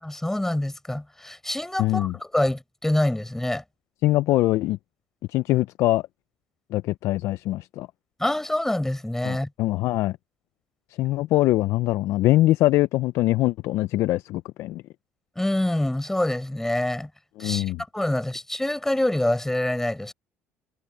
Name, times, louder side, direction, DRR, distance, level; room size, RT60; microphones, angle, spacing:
voice 1, 0.0-3.6 8.2-9.5 15.4-17.1 17.4-17.7 17.9-20.1, left 1 dB, 5° left, 6.3 m, -26 dB
voice 2, 1.8-2.1 4.0-4.8 5.3-6.0 6.7-7.9 9.2-10.2 11.0-14.8 17.4-17.8, left 16 dB, 70° left, 0.6 m, -23 dB
supercardioid pair, 75°, 5 cm